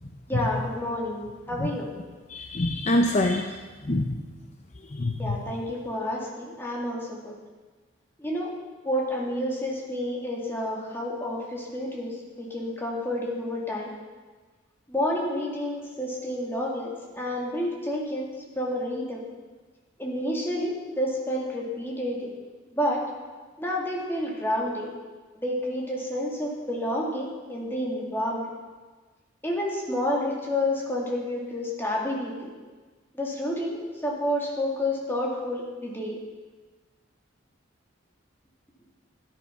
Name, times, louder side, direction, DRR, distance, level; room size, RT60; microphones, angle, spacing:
voice 1, 0.3-1.9 5.2-7.4 8.2-8.5 8.8-13.9 14.9-19.3 20.0-22.3 22.7-23.0 23.6-24.9 25.4-28.5 29.4-32.5 33.1-36.2, left 1 dB, 10° left, -3 dB, 2.3 m, -29 dB
voice 2, 2.3-3.6 3.8-4.2 4.9-5.4, left 1 dB, 35° left, 4 dB, 0.6 m, -25 dB
13.5 x 10.0 x 5.9 m, 1.4 s
head